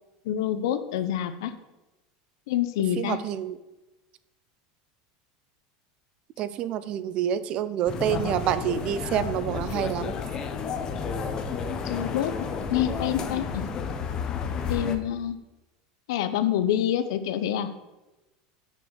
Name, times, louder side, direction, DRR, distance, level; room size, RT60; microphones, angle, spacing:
voice 1, 0.2-1.5 2.5-3.2 11.8-12.3 12.7-13.6 14.7-15.4 16.1-17.7, left 10 dB, 80° left, 11 dB, 0.8 m, -26 dB
voice 2, 3.0-3.6 6.4-10.1, right 10 dB, 45° right, 15 dB, 0.6 m, -27 dB
sound 1, 7.9-15.0, left 5 dB, 30° left, 1.0 m, -31 dB
7.0 x 6.1 x 7.2 m, 1.1 s
supercardioid pair, 135°, 2 cm